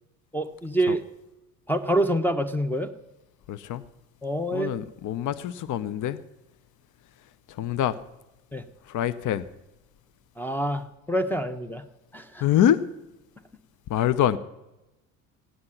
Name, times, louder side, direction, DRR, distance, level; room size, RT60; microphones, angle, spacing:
voice 1, 0.3-1.0 1.7-2.9 4.2-4.7 8.5-8.6 10.4-11.9 12.1-12.4, right 1 dB, 5° left, 3 dB, 1.0 m, -26 dB
voice 2, 3.5-3.8 4.5-6.2 7.5-8.0 8.8-9.5 12.4-12.8 13.9-14.4, left 11 dB, 45° left, 15 dB, 0.8 m, -25 dB
16.0 x 9.7 x 5.8 m, 0.97 s
hypercardioid pair, 65°, 44 cm